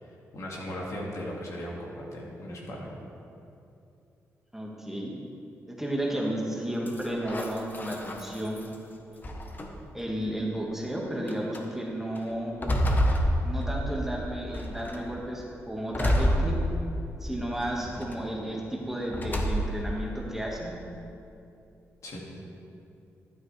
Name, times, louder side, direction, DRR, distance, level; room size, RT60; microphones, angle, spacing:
voice 1, 0.0-2.9 17.8-17.9 22.0-22.2, equal, 65° left, -3 dB, 2.1 m, -38 dB
voice 2, 4.5-5.1 5.7-8.6 9.9-12.6 13.4-16.6 17.2-20.7, right 1 dB, 5° right, -3 dB, 1.7 m, -33 dB
sound 1, 6.9-8.7 9.2-10.0 10.7-10.8 11.3-11.6 12.2-14.1 14.5-15.1 15.9-17.1 17.5-18.1 19.1-19.9, equal, 35° left, 1.1 m, -28 dB
12.5 x 9.0 x 3.4 m, 2.8 s
cardioid pair, 80°, 6 cm